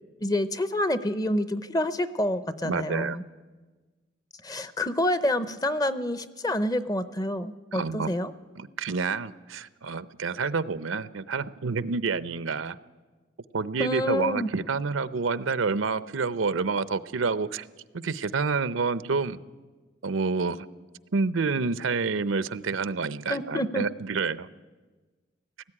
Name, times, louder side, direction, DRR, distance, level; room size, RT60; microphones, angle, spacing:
voice 1, 0.2-3.2 4.4-8.3 13.8-14.5 23.3-23.8, left 1 dB, 20° left, 14 dB, 0.6 m, -27 dB
voice 2, 2.6-3.2 7.7-8.1 8.6-12.8 13.5-17.7 17.9-19.4 20.0-20.7 21.1-24.5, right 4 dB, 80° right, 16 dB, 0.7 m, -28 dB
18.5 x 15.0 x 9.8 m, 1.3 s
head